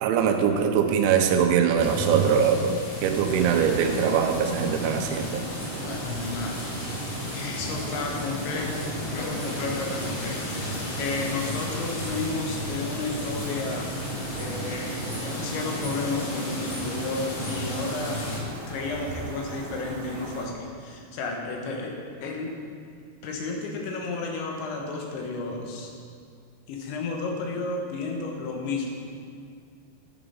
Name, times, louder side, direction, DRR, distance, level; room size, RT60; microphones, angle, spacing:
voice 1, 0.0-2.8 3.0-5.4, right 7 dB, 90° right, 5 dB, 3.2 m, -22 dB
sound 1, 1.7-4.6 4.9-13.4 13.6-14.7 15.0-15.3 15.6-16.1 16.5-19.1 19.4-19.5, right 2 dB, 30° left, 2.1 m, -38 dB
sound 2, 1.8-18.4, left 2 dB, 65° left, 4.1 m, -35 dB
sound 3, 3.0-20.5, right 3 dB, 70° right, 3.0 m, -38 dB
voice 2, 5.8-6.7 7.3-13.9 14.4-18.2 18.7-21.9 22.2-22.5 23.2-25.9 26.7-28.9, left 3 dB, 85° left, 1 dB, 3.5 m, -32 dB
10.5 x 6.9 x 5.5 m, 2.2 s
omnidirectional pair, 5.2 m